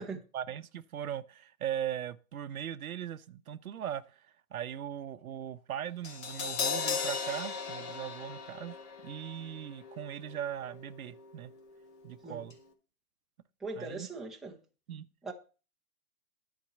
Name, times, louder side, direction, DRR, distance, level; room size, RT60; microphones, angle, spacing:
voice 1, 0.3-4.2 4.5-8.8 9.0-11.5 12.0-12.5 13.8-14.1 14.9-15.1, right 10 dB, 70° right, 1.0 m, -39 dB
Crash cymbal, 6.0-12.2 12.5-12.6, left 5 dB, 35° left, 2.2 m, -38 dB
voice 2, 13.6-14.6 15.2-15.3, right 3 dB, ahead, 0.9 m, -40 dB
10.5 x 4.6 x 8.1 m
hypercardioid pair, 140°, 45 cm